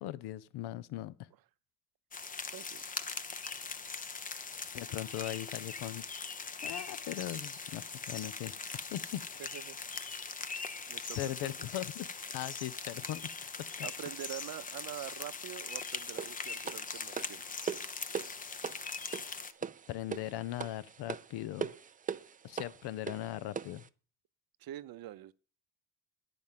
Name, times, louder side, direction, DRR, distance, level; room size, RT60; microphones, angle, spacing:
voice 1, 0.0-1.1 4.7-6.0 6.6-8.5 8.9-9.4 11.2-12.1 12.3-13.3 13.6-13.9 19.9-21.7 22.4-23.8, left 14 dB, 75° left, 0.6 m, -39 dB
sound 1, 2.1-19.5, left 4 dB, 20° left, 0.6 m, -41 dB
voice 2, 2.5-2.8 9.4-9.8 10.9-11.7 13.8-17.4 24.6-25.3, right 13 dB, 60° right, 0.7 m, -45 dB
sound 2, 3.4-3.9 4.2-6.2 6.5-7.1 7.5-8.2 8.5-10.4 10.8-11.5, left 5 dB, 55° left, 1.9 m, -62 dB
sound 3, 16.2-23.9, right 7 dB, 20° right, 0.4 m, -41 dB
9.5 x 5.2 x 7.3 m
cardioid pair, 110°, 40 cm